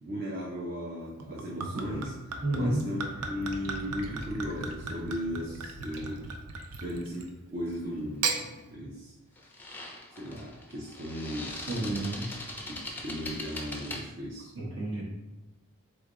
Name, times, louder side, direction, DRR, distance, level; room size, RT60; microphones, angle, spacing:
voice 1, 0.0-6.2 6.8-9.1 10.2-12.0 12.7-14.5, equal, 45° right, -4 dB, 0.7 m, -36 dB
Gurgling / Chink clink / Liquid, 1.2-7.4 8.0-8.4, right 4 dB, 80° right, 0.6 m, -36 dB
voice 2, 2.4-2.9 11.7-12.2 14.5-15.0, right 1 dB, 60° right, -4 dB, 1.2 m, -30 dB
sound 1, 7.7-7.9 9.4-14.0, left 2 dB, 10° left, 0.5 m, -41 dB
3.8 x 3.3 x 3.7 m, 1.1 s
head